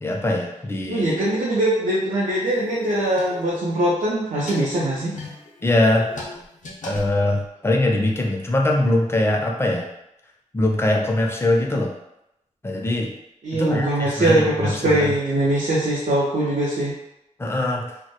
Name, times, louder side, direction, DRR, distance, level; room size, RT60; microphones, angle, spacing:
voice 1, 0.0-1.2 5.6-6.0 6.8-9.9 10.5-11.9 12.6-13.1 13.5-15.1 17.4-17.9, left 1 dB, 20° left, 0 dB, 0.4 m, -22 dB
voice 2, 0.9-5.2 13.4-16.9, right 1 dB, 75° right, -6 dB, 0.4 m, -22 dB
sound 1, 2.4-3.8 4.2-7.7, left 1 dB, 75° left, 0.5 m, -39 dB
2.1 x 2.0 x 2.8 m, 0.86 s
wide cardioid pair, 100°, 13 cm